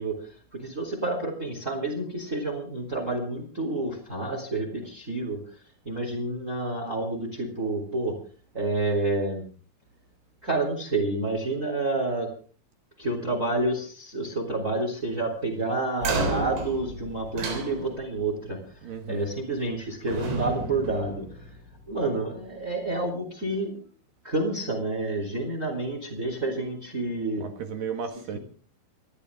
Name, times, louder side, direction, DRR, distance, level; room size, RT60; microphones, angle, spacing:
voice 1, 0.0-5.4 5.8-8.1 8.5-9.5 10.4-12.3 13.0-18.6 19.1-21.5 21.9-23.8 24.2-27.4, right 2 dB, 20° right, 3.2 m, -29 dB
sound 1, 16.0-18.3 19.4-19.8 20.1-21.8, right 3 dB, 90° right, 6.1 m, -32 dB
voice 2, 18.8-19.3 27.4-28.4, right 6 dB, 60° right, 2.6 m, -34 dB
28.5 x 11.5 x 3.7 m
omnidirectional pair, 5.4 m